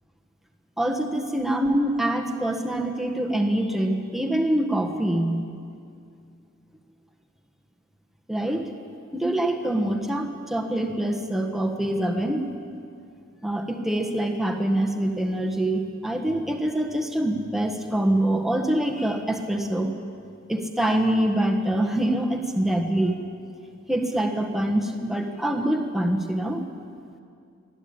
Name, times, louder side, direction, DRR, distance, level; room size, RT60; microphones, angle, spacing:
voice 1, 0.8-5.4 8.3-8.7 9.1-12.5 13.4-19.9 20.5-23.2 23.9-26.7, right 1 dB, ahead, 2 dB, 1.4 m, -25 dB
22.0 x 14.0 x 8.7 m, 2.4 s
head